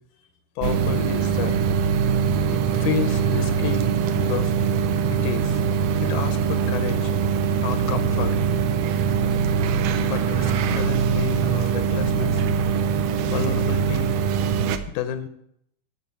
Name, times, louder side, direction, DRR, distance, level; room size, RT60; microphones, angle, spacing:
voice 1, 0.6-1.6 2.4-4.5 5.1-5.6 6.0-7.1 7.6-8.4 10.0-12.4 13.3-14.2 14.9-15.3, left 9 dB, 80° left, 9 dB, 2.2 m, -30 dB
sound 1, 0.6-14.8, right 6 dB, 80° right, 1.4 m, -22 dB
9.9 x 4.8 x 6.9 m, 0.73 s
omnidirectional pair, 3.4 m